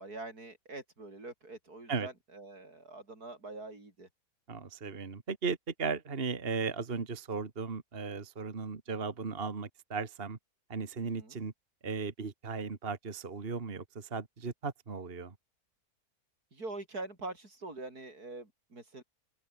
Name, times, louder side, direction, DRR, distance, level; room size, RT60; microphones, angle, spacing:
voice 1, 0.0-4.1 11.0-11.4 16.5-19.0, right 2 dB, 80° right, 6.1 m, -44 dB
voice 2, 4.5-10.4 10.7-11.5 11.8-15.3, right 5 dB, 40° right, 1.9 m, -36 dB
omnidirectional pair, 1.6 m